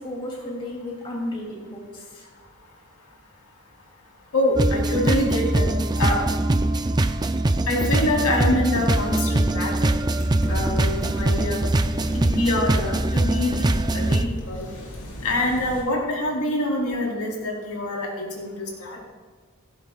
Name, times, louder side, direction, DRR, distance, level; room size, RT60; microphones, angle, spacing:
voice 1, 0.0-2.3 11.9-12.0 12.3-12.4, left 1 dB, 25° left, -3 dB, 2.9 m, -34 dB
voice 2, 4.3-5.7 6.0-6.2 7.7-9.9 10.5-11.6 12.1-14.7 15.2-18.5 18.8-19.0, left 1 dB, 85° left, -2 dB, 4.1 m, -25 dB
sound 1, 4.6-14.3, right 2 dB, 20° right, 0.4 m, -22 dB
sound 2, 10.2-15.8, equal, 55° left, 4.3 m, -35 dB
17.5 x 16.0 x 2.4 m, 1.5 s
head